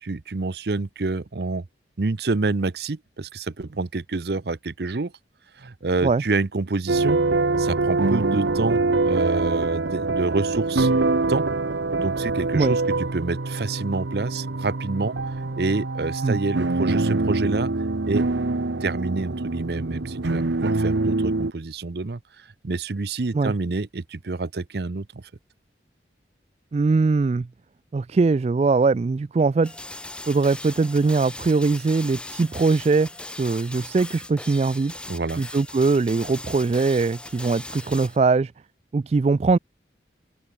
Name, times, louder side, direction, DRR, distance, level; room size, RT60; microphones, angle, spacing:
voice 1, 0.0-1.6 2.0-5.1 5.6-7.2 7.6-10.9 11.3-11.4 12.0-15.2 15.6-17.7 18.0-18.3 18.8-25.2 35.1-35.4, right 3 dB, 60° right, 0.7 m, -27 dB
sound 1, 6.9-21.5, right 3 dB, 80° right, 1.0 m, -24 dB
voice 2, 26.7-27.5 27.9-29.7 30.3-33.1 33.4-34.9 35.4-38.5 38.9-39.6, right 4 dB, 35° right, 0.3 m, -21 dB
sound 2, 29.6-38.2, left 2 dB, 5° left, 0.7 m, -39 dB
head